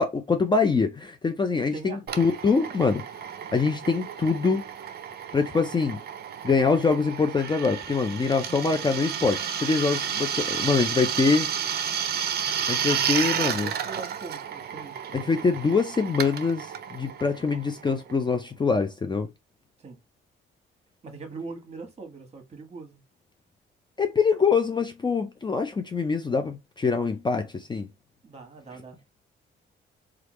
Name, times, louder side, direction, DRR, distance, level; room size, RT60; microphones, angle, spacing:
voice 1, 0.0-3.0 3.5-4.6 5.3-6.0 6.4-11.5 12.7-13.7 15.1-19.3 24.0-27.9, left 4 dB, 20° left, 0.5 m, -24 dB
voice 2, 1.7-2.0 13.3-15.2 19.8-20.0 21.0-23.0 28.2-29.0, right 4 dB, 30° right, 1.3 m, -41 dB
Drill, 2.1-18.4, right 8 dB, 55° right, 0.5 m, -32 dB
3.3 x 2.4 x 3.0 m
cardioid pair, 90°, 20 cm